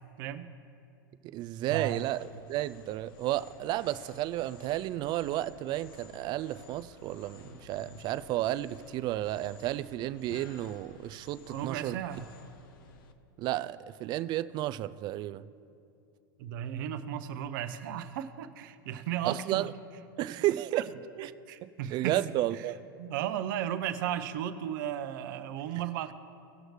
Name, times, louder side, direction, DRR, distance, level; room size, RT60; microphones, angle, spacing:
voice 1, 0.2-0.5 1.7-2.0 11.5-12.3 16.4-19.7 20.7-20.8 21.2-22.2 23.0-26.1, right 10 dB, 65° right, 10 dB, 0.7 m, -35 dB
voice 2, 1.2-12.0 13.4-15.5 19.2-19.7 20.2-20.9 21.2-21.3 21.6-22.8, right 15 dB, 40° right, 13 dB, 0.4 m, -32 dB
sound 1, 1.7-13.1, left 3 dB, 70° left, 0.8 m, -53 dB
18.5 x 6.3 x 3.2 m, 2.6 s
hypercardioid pair, 105°, 12 cm